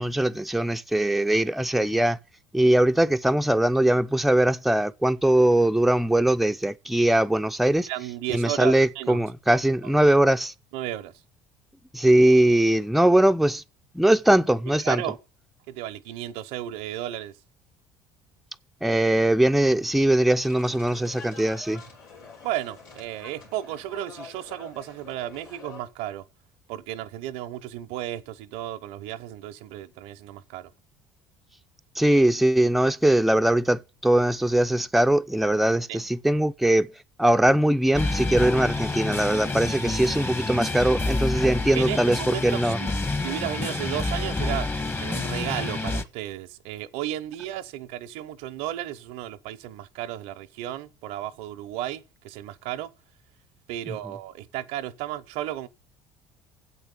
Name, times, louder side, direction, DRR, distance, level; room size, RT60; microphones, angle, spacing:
voice 1, 0.0-2.2 2.5-7.9 8.3-10.5 11.9-13.6 13.9-15.0 18.8-21.8 32.0-36.9 37.2-42.8, right 1 dB, ahead, 0.6 m, -21 dB
voice 2, 7.9-9.2 10.7-11.1 14.8-15.2 15.7-17.4 22.4-26.2 26.7-30.7 35.9-36.0 41.8-52.9 53.7-55.7, right 13 dB, 70° right, 0.7 m, -34 dB
sound 1, 20.4-25.8, left 4 dB, 85° left, 4.0 m, -46 dB
sound 2, 37.9-46.0, left 2 dB, 20° left, 1.3 m, -28 dB
8.0 x 6.8 x 8.2 m
hypercardioid pair, 70°, 11 cm